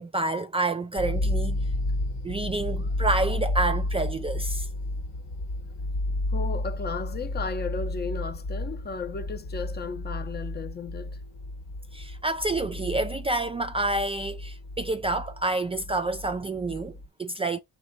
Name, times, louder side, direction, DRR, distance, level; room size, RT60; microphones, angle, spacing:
voice 1, 0.0-1.6 2.2-4.7 11.9-17.6, right 2 dB, 20° right, 0.3 m, -28 dB
sound 1, 1.0-17.1, left 1 dB, 85° left, 1.3 m, -32 dB
voice 2, 6.3-11.2, left 4 dB, 35° left, 0.6 m, -34 dB
4.9 x 2.3 x 4.0 m
cardioid pair, 90°, 30 cm